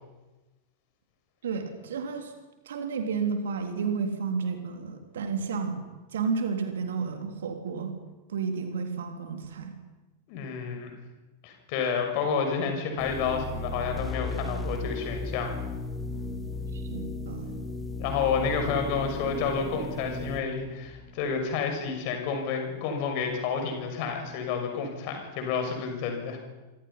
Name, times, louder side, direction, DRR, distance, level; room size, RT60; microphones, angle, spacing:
voice 1, 1.4-2.3 2.7-5.8 6.1-7.9 8.3-9.7 16.7-17.6, right 5 dB, 60° right, 5 dB, 3.7 m, -31 dB
voice 2, 10.3-10.9 11.4-15.5 18.0-26.4, left 6 dB, 45° left, 4 dB, 6.6 m, -30 dB
sound 1, 13.0-21.7, left 2 dB, 10° left, 2.7 m, -36 dB
26.0 x 25.5 x 5.8 m, 1.1 s
figure-of-eight pair, 90°, 0 cm